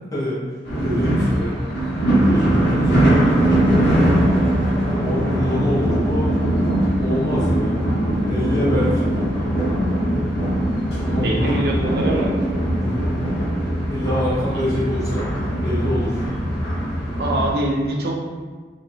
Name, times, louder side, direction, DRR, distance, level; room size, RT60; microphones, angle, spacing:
sound 1, 0.6-17.5, right 1 dB, 70° left, 0.9 m, -20 dB
voice 1, 0.8-1.5 2.2-3.8 5.0-6.3 7.0-7.8 8.3-9.1 11.1-11.6 12.8-13.1 13.9-15.3 15.6-16.2, equal, 20° left, -9 dB, 0.7 m, -25 dB
voice 2, 11.2-12.3 14.5-14.7 17.2-18.2, right 1 dB, 60° right, -1 dB, 0.4 m, -23 dB
2.6 x 2.5 x 2.3 m, 1.4 s
head